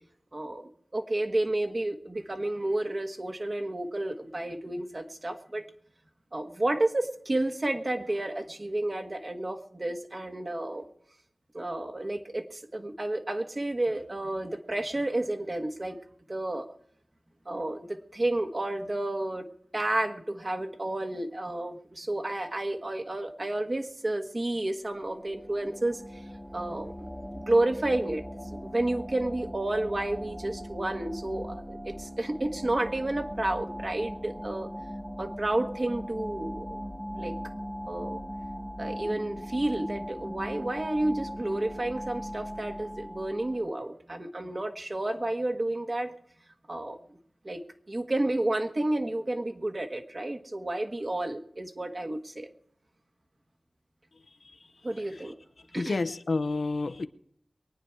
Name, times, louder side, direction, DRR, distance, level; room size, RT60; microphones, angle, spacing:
voice 1, 0.3-5.7 6.3-10.9 11.5-16.0 16.3-16.7 17.5-19.5 19.7-26.2 26.5-27.1 27.3-28.2 28.5-34.7 35.2-36.8 37.2-37.4 37.9-38.2 38.8-46.1 46.7-47.0 47.4-47.6 47.9-52.5 54.8-55.3 55.7-56.0, right 1 dB, 40° right, 5 dB, 1.6 m, -31 dB
sound 1, 24.8-43.7, equal, 5° right, 1.5 m, -39 dB
voice 2, 55.7-57.1, left 3 dB, 75° left, 10 dB, 0.8 m, -30 dB
23.5 x 9.5 x 4.7 m, 0.67 s
wide cardioid pair, 55°, 0 cm